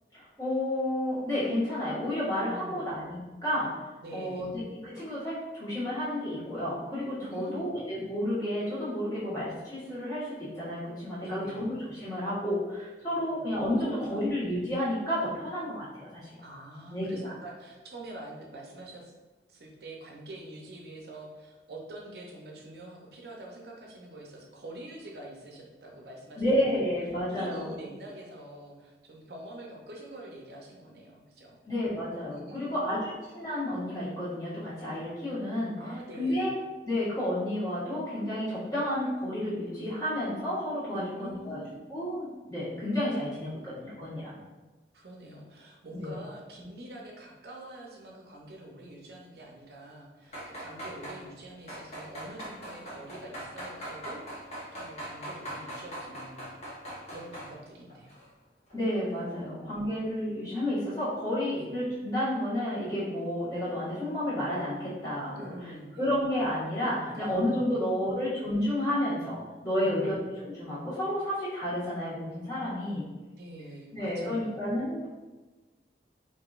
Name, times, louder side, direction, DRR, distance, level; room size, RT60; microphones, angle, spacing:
voice 1, 0.1-3.9 4.1-16.3 16.9-17.2 26.4-27.7 31.6-35.8 36.2-36.5 36.8-41.6 41.9-44.4 45.9-46.2 58.7-65.5 66.0-73.0 73.9-75.1, left 1 dB, 20° left, -10 dB, 1.4 m, -31 dB
voice 2, 2.5-2.8 4.0-4.6 7.2-7.8 11.2-11.7 13.3-13.4 13.8-14.3 16.4-19.0 19.5-26.6 27.2-31.6 32.3-33.0 35.8-36.5 40.9-41.8 44.2-44.3 44.9-56.5 57.1-58.2 59.3-59.9 61.5-61.7 65.4-66.1 67.0-67.4 67.7-68.1 69.8-70.1 73.4-74.5, right 1 dB, 65° right, -1 dB, 0.6 m, -45 dB
sound 1, 50.2-51.2 51.7-57.5 57.9-58.2 58.7-58.8, right 1 dB, 35° left, 0.9 m, -40 dB
4.7 x 2.7 x 2.4 m, 1.2 s
head